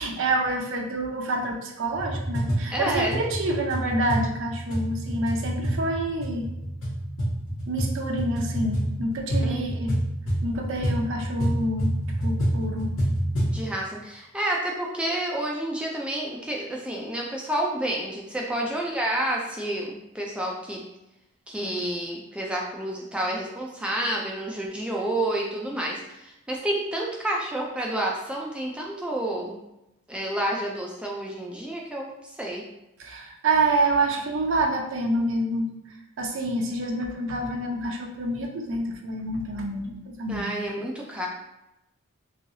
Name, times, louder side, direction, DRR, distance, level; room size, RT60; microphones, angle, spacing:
voice 1, 0.0-6.5 7.7-9.9 10.4-12.0 12.2-12.9 33.0-35.7 36.2-40.5, right 2 dB, 65° right, 2 dB, 0.5 m, -27 dB
sound 1, 1.9-13.6, equal, 65° left, 1.3 m, -28 dB
voice 2, 2.7-3.2 9.4-9.8 13.4-20.8 21.5-29.6 30.1-32.6 40.3-41.3, right 1 dB, 5° right, -2 dB, 0.3 m, -29 dB
3.1 x 2.7 x 2.6 m, 0.91 s
head